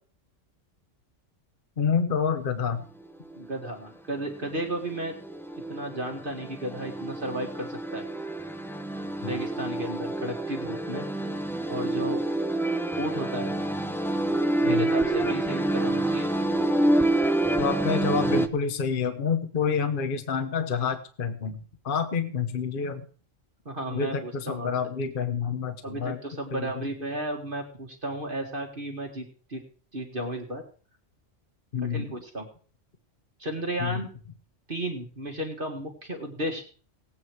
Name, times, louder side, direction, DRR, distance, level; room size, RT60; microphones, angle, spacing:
voice 1, 1.8-2.8 9.2-9.4 14.7-14.9 17.6-21.6 21.8-23.0 23.9-26.2 26.5-26.8 31.7-32.2 33.8-34.0, left 6 dB, 45° left, 9 dB, 1.1 m, -28 dB
sound 1, 3.3-3.4 4.2-18.5, right 1 dB, 5° left, 0.5 m, -27 dB
voice 2, 3.3-5.1 5.7-8.0 9.2-11.1 11.7-12.2 12.9-13.5 14.6-16.3 23.7-25.0 25.8-29.6 29.9-30.6 31.9-32.5 33.4-34.1 34.7-36.6, right 1 dB, 40° right, 2 dB, 2.2 m, -34 dB
18.5 x 8.8 x 4.7 m, 0.42 s
omnidirectional pair, 1.3 m